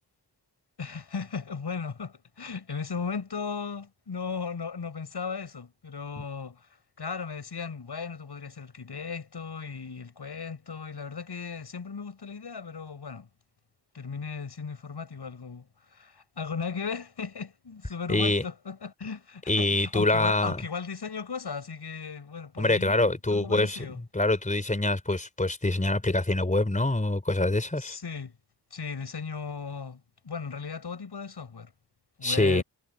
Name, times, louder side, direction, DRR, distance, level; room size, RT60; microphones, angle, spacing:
voice 1, 0.8-6.7 7.0-13.3 13.9-24.0 27.7-28.3 28.7-31.7 32.2-32.6, left 5 dB, 70° left, 7.5 m, -36 dB
voice 2, 18.1-18.4 19.5-20.6 22.6-23.9 24.1-28.0 32.2-32.6, left 2 dB, 20° left, 4.2 m, -25 dB
wide cardioid pair, 115°, 42 cm